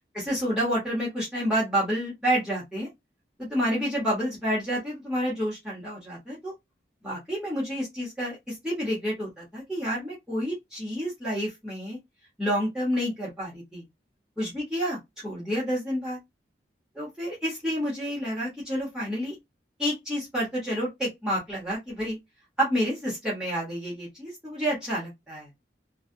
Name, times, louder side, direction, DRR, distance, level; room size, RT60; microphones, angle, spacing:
voice 1, 0.1-2.9 3.4-6.5 7.0-12.0 12.4-13.8 14.4-16.2 16.9-19.3 19.8-22.2 22.6-25.5, equal, 5° right, 1.3 m, -29 dB
3.2 x 2.3 x 2.6 m
head